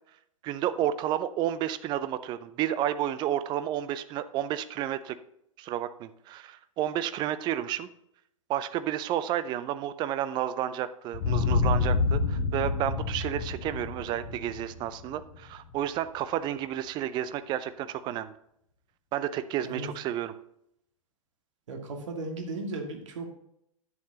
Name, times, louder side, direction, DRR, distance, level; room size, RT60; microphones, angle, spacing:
voice 1, 0.4-5.2 5.6-7.9 8.5-18.3 19.1-20.3, right 11 dB, 25° right, 13 dB, 0.5 m, -31 dB
sound 1, 11.1-15.7, left 4 dB, 45° left, 0.9 m, -28 dB
voice 2, 21.7-23.3, right 2 dB, 60° right, 2 dB, 2.0 m, -36 dB
10.5 x 8.6 x 2.8 m, 0.75 s
figure-of-eight pair, 100°, 18 cm